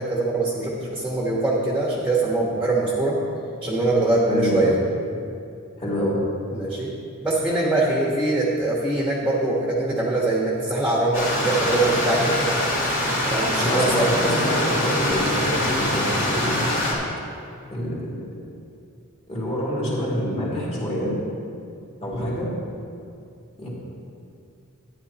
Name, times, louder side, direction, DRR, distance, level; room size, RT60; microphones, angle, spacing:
voice 1, 0.0-3.2 3.6-4.8 6.5-6.9 7.2-12.5 13.3-14.1, right 2 dB, 5° right, -4 dB, 1.2 m, -23 dB
voice 2, 4.2-4.6 5.8-6.1 13.6-16.7 17.7-18.0 19.3-21.1 22.0-22.5 23.6-23.7, equal, 30° left, -6 dB, 2.5 m, -26 dB
Stream, 11.1-16.9, left 1 dB, 65° left, 2.8 m, -24 dB
13.0 x 10.5 x 2.9 m, 2.4 s
head